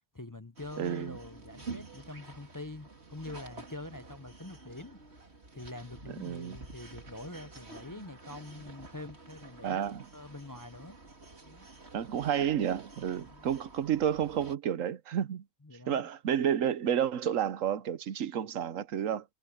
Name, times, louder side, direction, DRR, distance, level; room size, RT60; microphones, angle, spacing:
voice 1, 0.1-5.0 5.5-11.0 11.4-11.7 13.2-13.5 15.6-16.1, left 2 dB, 20° left, 0.6 m, -45 dB
sound 1, 0.6-14.6, right 3 dB, 55° right, 3.1 m, -49 dB
voice 2, 0.8-1.2 6.2-6.6 9.6-10.1 11.9-15.4 15.9-19.2, right 9 dB, 80° right, 1.2 m, -30 dB
omnidirectional pair, 1.3 m